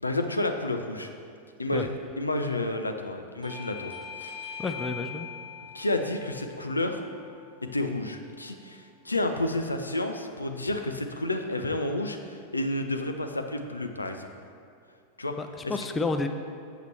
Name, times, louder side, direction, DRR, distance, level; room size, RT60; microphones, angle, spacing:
voice 1, 0.0-1.1 1.6-1.9 2.2-3.9 4.2-4.6 5.7-7.0 7.6-14.3 15.2-15.3 15.6-15.7, left 2 dB, 80° left, 5 dB, 0.5 m, -30 dB
Bell / Doorbell, 3.4-8.6, left 7 dB, 5° right, 0.9 m, -43 dB
voice 2, 4.6-5.3 15.4-16.3, left 3 dB, 15° left, 7 dB, 0.4 m, -30 dB
8.0 x 6.6 x 3.2 m, 2.4 s
figure-of-eight pair, 90°, 0 cm